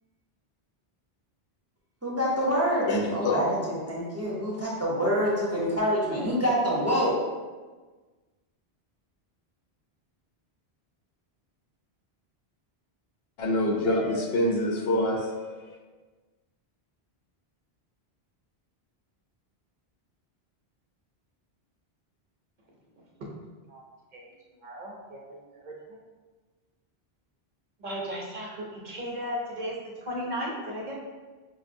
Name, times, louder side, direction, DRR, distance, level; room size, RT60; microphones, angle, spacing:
voice 1, 2.0-7.2, equal, 20° right, -7 dB, 0.5 m, -26 dB
voice 2, 2.9-3.4 13.4-15.6, left 1 dB, 75° left, 1 dB, 0.8 m, -26 dB
voice 3, 24.6-26.0 27.8-31.0, equal, 55° right, -3 dB, 0.7 m, -36 dB
5.1 x 2.0 x 2.5 m, 1.3 s
omnidirectional pair, 1.1 m